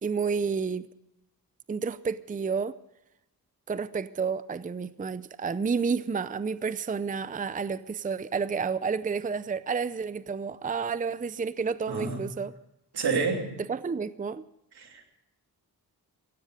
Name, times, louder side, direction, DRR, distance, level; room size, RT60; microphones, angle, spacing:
voice 1, 0.0-0.9 1.7-2.7 3.7-12.5 13.7-14.4, right 5 dB, 20° right, 15 dB, 0.5 m, -30 dB
voice 2, 11.9-12.2 12.9-13.6 14.8-15.1, right 4 dB, 85° right, 3 dB, 3.0 m, -29 dB
16.5 x 15.5 x 5.0 m, 0.87 s
wide cardioid pair, 95°, 38 cm